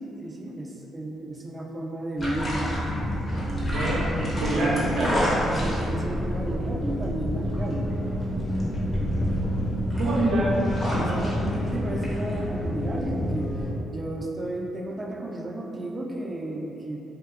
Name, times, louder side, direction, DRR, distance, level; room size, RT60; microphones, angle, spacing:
voice 1, 0.0-2.8 3.5-4.8 5.6-7.9 11.0-11.4 11.7-13.6 13.9-17.0, right 1 dB, 25° right, -1 dB, 0.3 m, -33 dB
sound 1, 2.2-13.7, equal, 25° left, 0.7 m, -28 dB
voice 2, 3.7-5.6 9.9-10.6 10.9-11.5, right 1 dB, 90° right, -7 dB, 0.4 m, -27 dB
Squeak, 6.6-12.9 13.7-13.8, left 1 dB, 65° left, 0.3 m, -36 dB
2.7 x 2.1 x 2.3 m, 2.8 s
cardioid pair, 90°, 0 cm